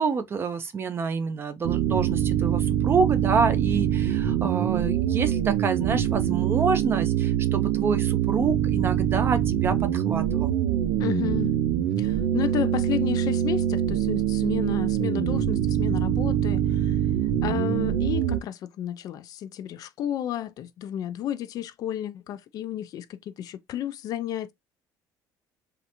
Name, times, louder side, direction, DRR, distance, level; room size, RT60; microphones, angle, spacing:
voice 1, 0.0-10.5, right 5 dB, 30° right, 0.5 m, -27 dB
sound 1, 1.6-18.4, right 10 dB, 90° right, 0.5 m, -24 dB
voice 2, 11.0-11.5 12.0-17.0 17.4-24.5, left 11 dB, 50° left, 0.4 m, -32 dB
3.2 x 2.4 x 2.9 m
cardioid pair, 145°, 8 cm